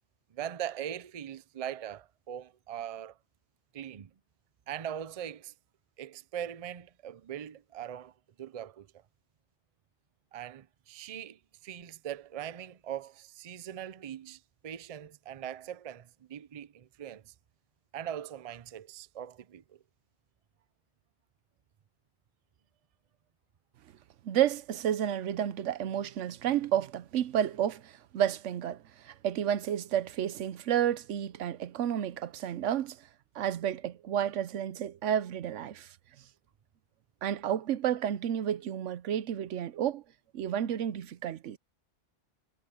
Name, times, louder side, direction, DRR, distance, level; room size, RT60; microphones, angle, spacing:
voice 1, 0.3-3.2 3.7-4.1 4.7-5.5 6.0-8.9 10.3-17.3 17.9-19.8, right 10 dB, 40° right, 0.5 m, -41 dB
voice 2, 24.2-33.0 33.3-35.9 37.2-40.0 40.3-41.6, right 10 dB, 85° right, 1.0 m, -31 dB
omnidirectional pair, 1.2 m